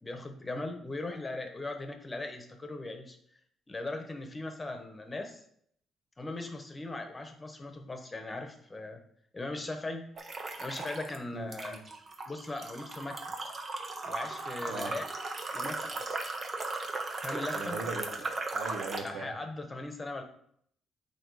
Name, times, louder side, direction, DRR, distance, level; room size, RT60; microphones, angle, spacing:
voice 1, 0.0-3.2 3.7-5.4 6.2-9.0 9.3-10.1 10.6-11.8 12.3-13.3 14.1-15.1 15.5-16.4 17.2-17.8 19.0-20.2, left 2 dB, 20° left, 5 dB, 1.2 m, -39 dB
sound 1, 10.2-11.2 11.5-19.1, right 3 dB, 40° right, 1.0 m, -37 dB
voice 2, 11.3-11.8 14.7-14.9 17.5-19.3, right 3 dB, 85° right, 2 dB, 1.3 m, -39 dB
8.7 x 3.1 x 4.8 m, 0.68 s
cardioid pair, 90°, 0 cm